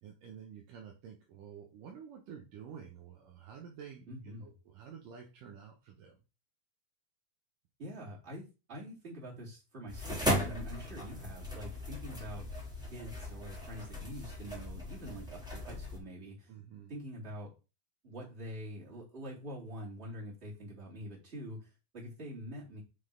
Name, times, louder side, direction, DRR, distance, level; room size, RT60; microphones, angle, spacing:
voice 1, 0.0-4.1 4.4-6.2 16.5-16.9, right 7 dB, 70° right, 1 dB, 2.5 m, -50 dB
voice 2, 4.1-4.5 7.8-12.5 12.8-16.5 16.9-17.5 18.0-22.8, equal, 15° right, -5 dB, 3.4 m, -45 dB
sound 1, 9.9-16.0, equal, ahead, 2.2 m, -37 dB
6.4 x 5.0 x 5.1 m, 0.31 s
omnidirectional pair, 4.3 m